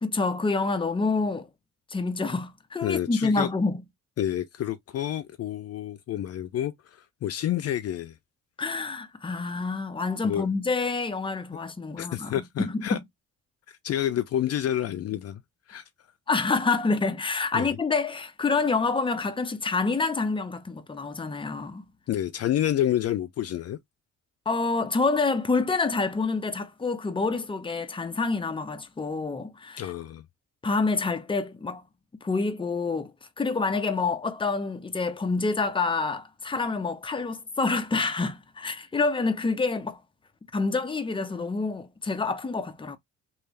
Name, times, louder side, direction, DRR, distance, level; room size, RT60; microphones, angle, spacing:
voice 1, 0.0-1.5 1.9-3.8 8.6-13.0 16.3-21.9 24.5-29.9 30.6-31.8 32.2-33.1 33.4-40.0 40.5-43.0, left 3 dB, 15° left, 0.7 m, -27 dB
voice 2, 2.8-3.5 4.2-8.1 10.2-10.4 12.0-13.0 13.7-15.4 15.7-15.8 17.5-17.7 22.1-23.8 29.8-30.2, left 11 dB, 55° left, 0.5 m, -29 dB
3.4 x 2.7 x 3.2 m
cardioid pair, 90°, 30 cm